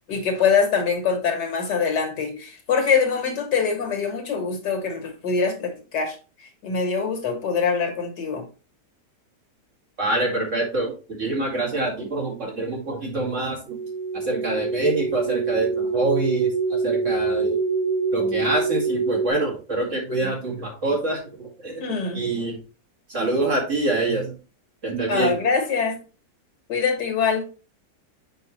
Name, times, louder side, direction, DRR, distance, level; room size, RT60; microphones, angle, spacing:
voice 1, 0.1-6.2 6.6-8.4 21.8-22.2 25.1-26.0 26.7-27.4, left 5 dB, 70° left, 4 dB, 2.1 m, -23 dB
voice 2, 10.0-10.9 11.2-13.8 14.1-17.6 18.1-21.8 22.1-22.6 23.1-24.3 24.8-25.4, right 2 dB, 45° right, -2 dB, 2.5 m, -25 dB
sound 1, 13.7-19.3, right 4 dB, 80° right, 1.7 m, -25 dB
6.8 x 5.4 x 3.1 m, 0.34 s
omnidirectional pair, 1.9 m